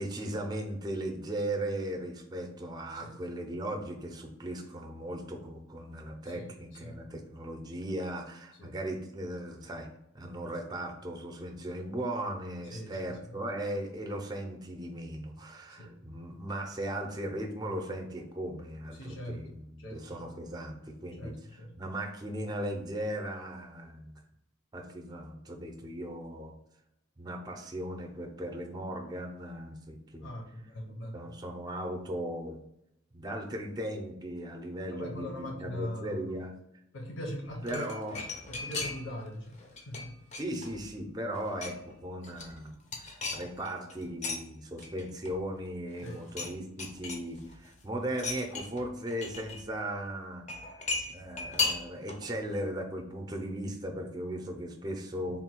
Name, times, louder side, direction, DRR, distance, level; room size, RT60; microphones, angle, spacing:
voice 1, 0.0-9.9 10.1-24.2 24.7-26.5 27.2-30.3 31.1-32.6 33.1-36.5 37.6-38.2 40.4-50.5 51.1-55.4, right 1 dB, 20° right, 3 dB, 0.5 m, -37 dB
voice 2, 12.7-13.4 15.8-15.9 18.9-19.4 19.8-20.3 21.2-21.7 30.2-31.2 34.9-36.3 36.9-37.9 38.5-40.2 46.0-46.3 55.2-55.3, equal, 70° left, 0 dB, 0.9 m, -41 dB
sound 1, 37.5-39.2 39.5-40.9 41.3-41.9 42.2-44.4 44.8-45.7 45.9-46.5 46.8-47.7 48.1-49.6 50.5-52.3 52.5-52.6, left 4 dB, 35° left, 0.6 m, -36 dB
3.6 x 2.3 x 4.4 m, 0.81 s
head